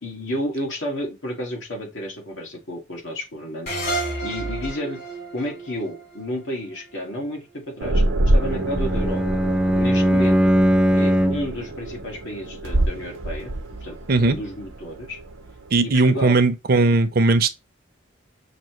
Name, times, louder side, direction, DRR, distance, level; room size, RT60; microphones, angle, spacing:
voice 1, 0.0-3.8 4.2-5.0 5.3-9.4 9.7-10.5 10.9-13.5 13.8-15.2 15.8-16.4, left 1 dB, 80° left, 1.8 m, -31 dB
sound 1, 3.7-7.0, right 2 dB, 55° left, 2.2 m, -30 dB
sound 2, 7.8-15.8, right 1 dB, 85° right, 0.8 m, -26 dB
Bowed string instrument, 8.4-11.6, equal, 5° right, 0.3 m, -20 dB
voice 2, 15.7-17.5, right 3 dB, 50° right, 0.6 m, -18 dB
5.9 x 2.8 x 3.0 m
head